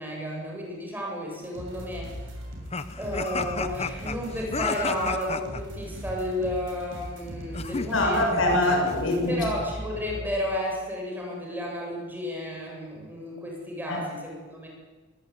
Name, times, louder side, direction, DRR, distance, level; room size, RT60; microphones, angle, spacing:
voice 1, 0.0-2.1 3.0-8.3 9.3-14.7, equal, 10° right, -1 dB, 7.8 m, -32 dB
sound 1, 1.3-10.4, equal, 65° right, 6.5 m, -39 dB
sound 2, 2.7-5.6 7.5-9.0, left 4 dB, 30° left, 1.0 m, -32 dB
voice 2, 7.9-9.4 13.9-14.0, left 1 dB, 70° left, 2 dB, 7.3 m, -23 dB
23.0 x 20.5 x 9.5 m, 1.3 s
head